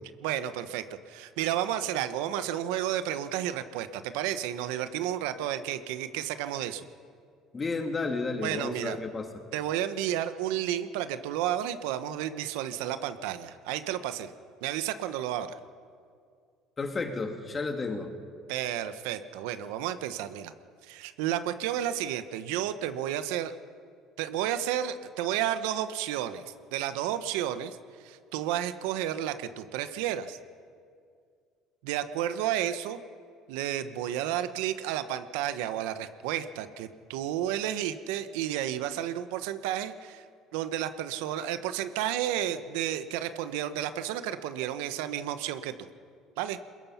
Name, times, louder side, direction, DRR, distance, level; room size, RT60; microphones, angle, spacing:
voice 1, 0.2-6.9 8.4-9.0 9.5-14.3 14.6-15.6 18.5-20.5 20.8-23.5 24.2-26.4 26.7-27.8 28.0-30.4 31.8-33.0 33.5-40.2 40.5-45.7 46.4-46.6, right 11 dB, 90° right, 11 dB, 1.0 m, -32 dB
voice 2, 7.5-9.3 16.8-18.1, left 3 dB, 25° left, 5 dB, 2.4 m, -32 dB
22.0 x 21.0 x 5.8 m, 2.2 s
cardioid pair, 110°, 0 cm